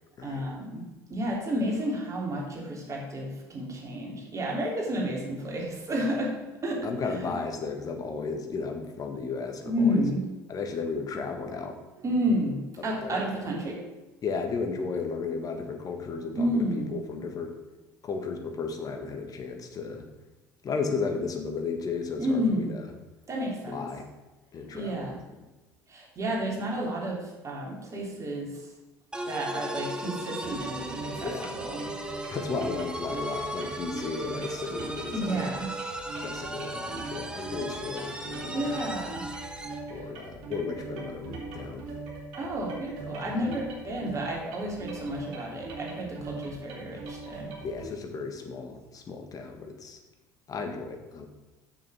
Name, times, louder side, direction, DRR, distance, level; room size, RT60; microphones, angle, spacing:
voice 1, 0.2-7.3 9.7-10.3 12.0-13.8 16.3-17.0 22.2-22.7 23.3-23.8 24.7-25.2 25.9-28.6 29.2-32.0 35.1-35.7 38.5-39.3 42.4-47.5, equal, 35° right, -2 dB, 3.2 m, -31 dB
voice 2, 6.8-10.0 10.5-11.8 12.8-13.2 14.2-17.6 18.0-20.1 20.6-22.9 23.7-24.0 24.5-25.1 31.2-31.6 32.3-35.5 36.2-38.8 39.9-41.9 43.3-43.5 47.6-50.0 50.5-51.3, left 4 dB, 40° left, 4 dB, 1.7 m, -34 dB
sound 1, 29.1-39.9, right 1 dB, 10° right, 1.1 m, -37 dB
sound 2, 30.4-47.9, right 3 dB, 65° right, 2.6 m, -41 dB
7.0 x 6.4 x 6.2 m, 1.1 s
hypercardioid pair, 60°, 9 cm